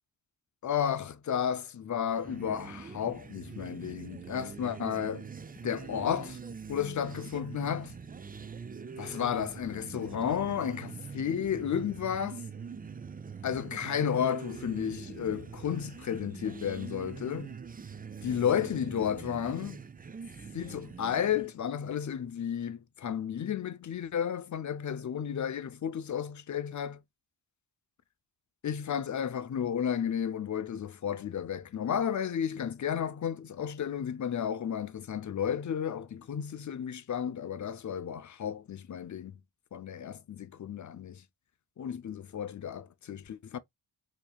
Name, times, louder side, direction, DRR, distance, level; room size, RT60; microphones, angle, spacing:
voice 1, 0.6-5.3 5.6-6.4 6.7-7.9 9.0-12.5 13.4-17.5 18.2-19.8 20.5-27.0 28.6-39.3 39.7-41.2 41.8-43.6, left 8 dB, 40° left, 0.5 m, -32 dB
sound 1, 2.1-21.5, right 5 dB, 20° right, 0.3 m, -44 dB
4.4 x 2.9 x 2.2 m
cardioid pair, 70°, 46 cm